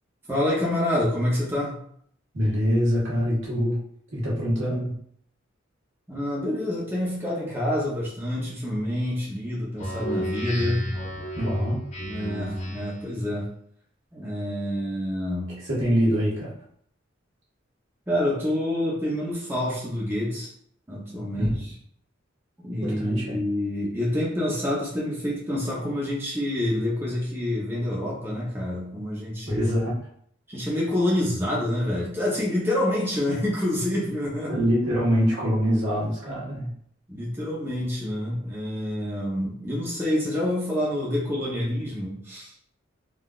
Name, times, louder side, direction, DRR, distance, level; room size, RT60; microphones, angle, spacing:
voice 1, 0.3-1.7 6.1-10.9 12.0-13.5 14.1-15.6 18.1-20.5 20.9-21.7 22.6-29.7 30.5-34.5 37.1-42.5, left 1 dB, 10° right, -5 dB, 0.7 m, -27 dB
voice 2, 2.3-3.8 4.1-4.9 11.3-11.8 15.7-16.5 21.3-21.7 22.8-23.4 29.5-29.9 34.5-36.7, equal, 70° right, -7 dB, 1.4 m, -24 dB
Speech synthesizer, 9.8-13.1, equal, 35° left, 0.8 m, -32 dB
3.7 x 2.4 x 2.4 m, 0.65 s
head